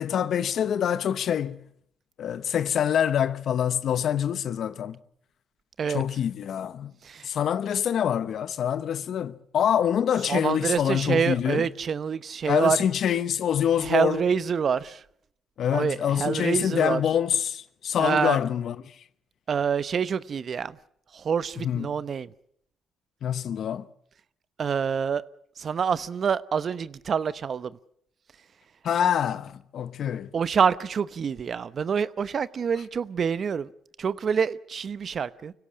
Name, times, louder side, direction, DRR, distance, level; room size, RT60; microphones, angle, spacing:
voice 1, 0.0-1.6 2.2-5.0 5.9-6.9 7.2-11.6 12.5-14.2 15.6-18.8 21.6-21.9 23.2-23.9 28.8-30.3, left 9 dB, 65° left, 1.0 m, -25 dB
voice 2, 10.3-12.8 13.8-15.0 15.7-17.0 18.0-18.4 19.5-20.8 21.1-22.3 24.6-25.2 25.6-27.8 30.3-33.7 34.0-35.5, right 6 dB, 50° right, 0.8 m, -26 dB
25.0 x 16.5 x 8.6 m
cardioid pair, 90°, 0 cm